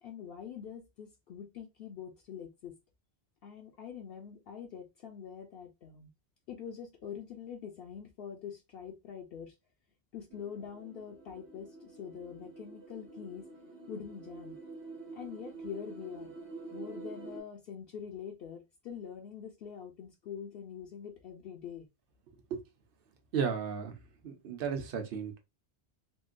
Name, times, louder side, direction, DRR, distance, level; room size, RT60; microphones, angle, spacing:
voice 1, 0.0-2.8 3.4-6.1 6.5-9.5 10.1-13.5 13.9-14.6 15.1-16.3 16.7-21.9, left 8 dB, 65° left, 0.7 m, -44 dB
sound 1, 10.3-17.4, right 3 dB, 80° right, 1.1 m, -47 dB
voice 2, 23.3-24.0 24.2-25.4, right 6 dB, 60° right, 0.8 m, -34 dB
3.6 x 2.2 x 2.5 m
omnidirectional pair, 1.1 m